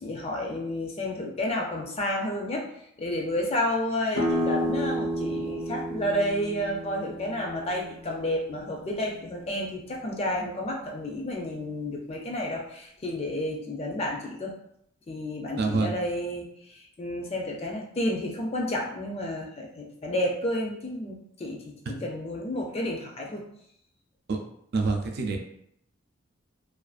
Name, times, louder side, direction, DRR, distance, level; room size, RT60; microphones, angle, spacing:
voice 1, 0.0-2.7 3.0-14.5 15.1-23.4, left 1 dB, 30° left, 0 dB, 0.4 m, -31 dB
sound 1, 4.1-9.5, equal, 85° left, 0.6 m, -31 dB
voice 2, 15.6-16.0 24.3-24.4 24.7-25.4, right 3 dB, 55° right, 3 dB, 0.4 m, -26 dB
2.5 x 2.3 x 2.4 m, 0.71 s
head